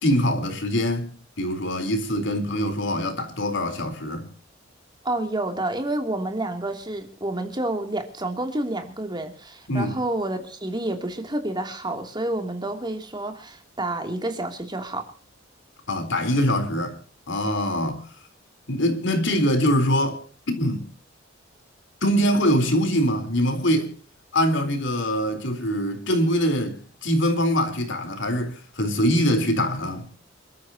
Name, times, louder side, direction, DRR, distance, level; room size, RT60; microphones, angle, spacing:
voice 1, 0.0-4.3 9.7-10.0 15.9-17.0 17.3-18.1 18.7-20.2 20.5-20.9 22.0-23.9 24.3-30.1, equal, 65° left, 3.9 m, -23 dB
voice 2, 5.0-15.1, right 1 dB, 25° right, 2.8 m, -29 dB
28.0 x 13.5 x 2.9 m
head